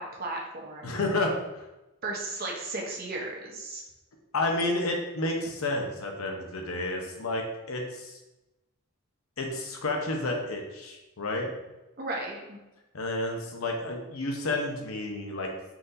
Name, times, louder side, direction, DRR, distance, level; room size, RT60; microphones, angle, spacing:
voice 1, 0.0-1.0 2.0-3.8 12.0-12.6, right 2 dB, 45° right, -2 dB, 1.0 m, -35 dB
voice 2, 0.8-1.7 4.3-8.2 9.4-11.5 12.9-15.5, left 2 dB, 90° left, 1 dB, 0.8 m, -30 dB
4.4 x 3.9 x 2.7 m, 1.0 s
head